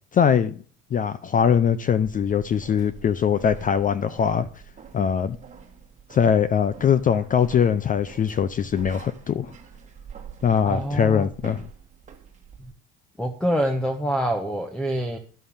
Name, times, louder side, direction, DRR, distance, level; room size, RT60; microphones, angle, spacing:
voice 1, 0.1-0.5 0.9-4.5 4.9-5.4 6.1-9.5 10.4-11.7, left 7 dB, 25° left, 0.5 m, -21 dB
sound 1, 2.1-12.7, right 7 dB, 25° right, 2.0 m, -45 dB
voice 2, 10.6-11.3 12.6-12.7 13.2-15.2, equal, 5° left, 1.1 m, -26 dB
11.5 x 6.5 x 7.2 m
cardioid pair, 130°, 31 cm